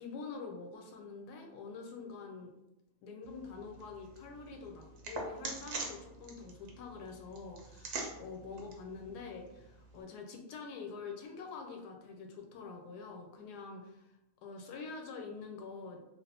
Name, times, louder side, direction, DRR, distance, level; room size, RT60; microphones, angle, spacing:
voice 1, 0.0-2.5 3.0-16.0, left 4 dB, 85° left, 3 dB, 1.2 m, -46 dB
sound 1, 3.2-10.0, right 3 dB, 60° right, 0.8 m, -45 dB
3.3 x 2.4 x 2.8 m, 0.90 s
omnidirectional pair, 1.7 m